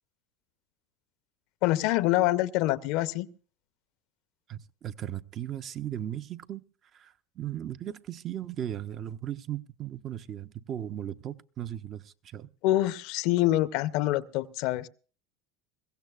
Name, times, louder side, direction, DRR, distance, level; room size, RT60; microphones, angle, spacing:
voice 1, 1.6-3.3 12.6-14.9, left 16 dB, 65° left, 0.5 m, -25 dB
voice 2, 4.5-6.6 6.9-12.5, right 11 dB, 40° right, 0.5 m, -37 dB
22.0 x 15.5 x 2.4 m
supercardioid pair, 100°, 0 cm